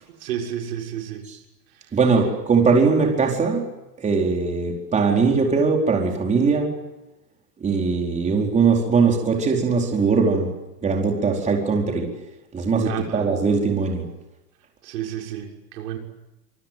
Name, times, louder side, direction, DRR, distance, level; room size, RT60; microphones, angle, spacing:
voice 1, 0.2-1.3 1.7-2.0 12.8-13.3 14.8-16.0, right 10 dB, 80° right, 2 dB, 6.6 m, -31 dB
voice 2, 1.9-3.7 4.0-6.8 7.6-10.5 10.8-12.2 12.5-14.1, right 4 dB, 15° right, 1 dB, 4.6 m, -20 dB
26.0 x 23.5 x 9.2 m, 0.99 s
supercardioid pair, 155°, 47 cm